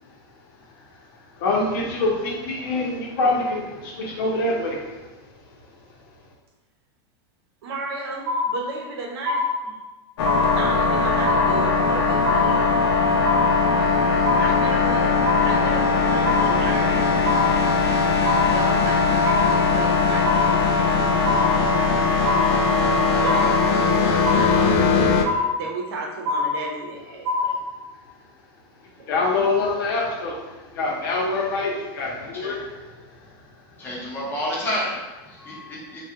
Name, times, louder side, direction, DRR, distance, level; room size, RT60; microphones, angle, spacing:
voice 1, 1.4-4.9 29.1-30.4 30.7-32.6, left 2 dB, 60° left, -2 dB, 0.8 m, -24 dB
voice 2, 7.6-9.8 10.6-12.8 14.4-17.1 18.5-21.8 23.1-27.6 29.0-29.2, right 3 dB, 75° right, -1 dB, 0.7 m, -34 dB
sound 1, 8.3-8.9 9.3-9.9 10.3-10.9 11.3-11.9 12.3-12.9 13.3-13.9 14.3-14.9 15.3-15.9 16.3-16.9 17.3-17.9 18.3-18.9 19.3-19.9 20.2-20.9 21.2-21.9 22.3-22.9 23.3-23.9 24.3-24.9 25.3-25.9 26.3-26.9 27.3-27.9, left 3 dB, 25° right, 0.9 m, -25 dB
sound 2, 10.2-25.2, left 4 dB, 90° left, 0.4 m, -20 dB
voice 3, 33.8-36.0, equal, 15° left, -4 dB, 0.6 m, -30 dB
3.3 x 2.3 x 2.8 m, 1.1 s
supercardioid pair, 175°, 13 cm